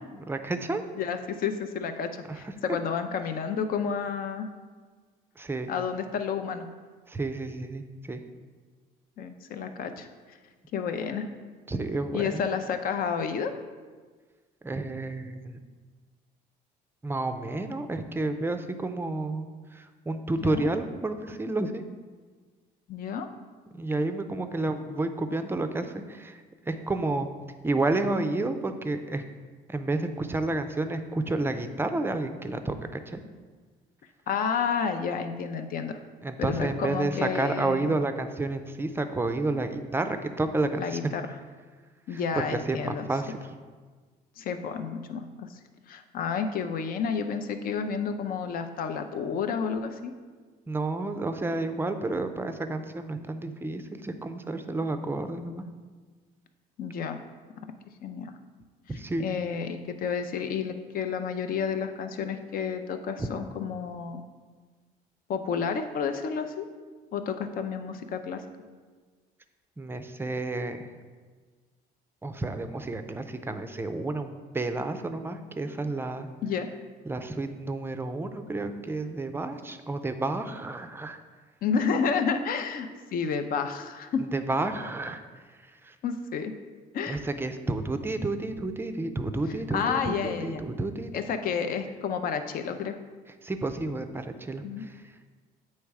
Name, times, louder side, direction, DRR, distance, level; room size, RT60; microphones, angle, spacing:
voice 1, 0.1-0.8 2.3-2.5 5.4-5.7 7.1-8.2 11.7-12.4 14.6-15.6 17.0-19.5 19.7-21.8 23.7-27.3 27.6-29.2 29.7-33.2 36.2-41.2 42.1-43.5 50.7-55.6 58.9-59.3 63.2-63.3 69.8-70.9 72.2-76.3 77.0-81.2 84.3-85.2 85.5-86.0 87.1-91.1 93.4-95.3, right 2 dB, 15° right, 8 dB, 0.4 m, -30 dB
voice 2, 1.0-2.1 2.4-4.5 5.7-6.7 9.2-10.1 10.7-11.3 12.1-13.5 20.4-20.6 22.9-23.3 34.3-36.0 36.4-37.9 40.8-41.2 42.1-43.0 44.4-45.6 45.9-50.1 56.8-57.2 58.0-58.3 59.2-64.2 65.3-66.7 67.1-68.4 76.4-76.7 81.6-84.2 86.0-86.5 86.9-87.2 89.7-90.6 91.1-93.0 94.6-94.9, left 6 dB, 60° left, 8 dB, 0.6 m, -30 dB
8.3 x 3.2 x 4.7 m, 1.5 s
cardioid pair, 110°, 17 cm